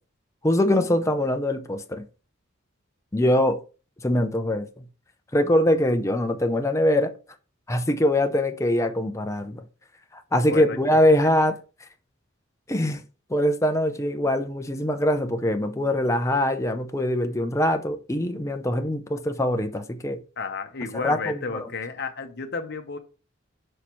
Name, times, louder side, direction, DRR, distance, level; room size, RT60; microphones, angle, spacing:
voice 1, 0.4-2.0 3.1-3.6 4.0-4.8 5.3-7.1 7.7-9.6 10.1-11.5 12.7-13.0 13.3-20.2 20.9-21.7, left 1 dB, 15° left, 0.5 m, -23 dB
voice 2, 10.5-10.8 20.4-23.0, left 4 dB, 55° left, 0.9 m, -32 dB
6.4 x 5.6 x 3.0 m
head